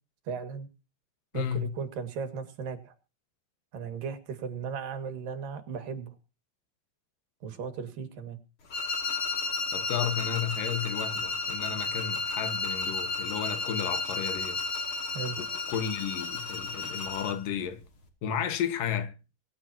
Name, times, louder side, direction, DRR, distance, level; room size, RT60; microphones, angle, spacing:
voice 1, 0.3-0.7 1.3-3.0 3.7-6.2 7.4-8.4 15.1-15.4, right 6 dB, 85° right, 3.9 m, -36 dB
voice 2, 1.3-1.8 9.7-14.6 15.4-17.8 18.2-19.2, left 8 dB, 80° left, 3.2 m, -33 dB
sound 1, 8.7-17.4, left 3 dB, 40° left, 3.3 m, -33 dB
24.5 x 11.5 x 2.9 m
omnidirectional pair, 3.8 m